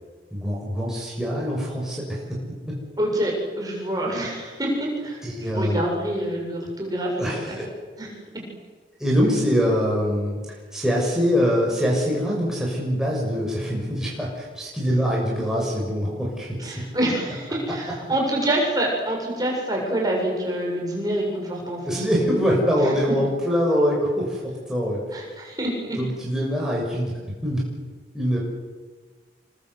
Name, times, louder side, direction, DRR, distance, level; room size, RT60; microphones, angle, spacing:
voice 1, 0.3-2.4 2.7-2.8 5.2-5.8 7.2-7.7 9.0-10.4 10.7-16.8 21.8-25.0 26.0-27.6 28.1-28.4, equal, 5° right, -4 dB, 6.9 m, -24 dB
voice 2, 3.0-5.2 5.5-7.6 8.0-8.1 16.6-22.3 22.8-22.9 25.1-26.0, right 1 dB, 20° right, -1 dB, 7.7 m, -26 dB
28.0 x 24.5 x 8.3 m, 1.4 s
head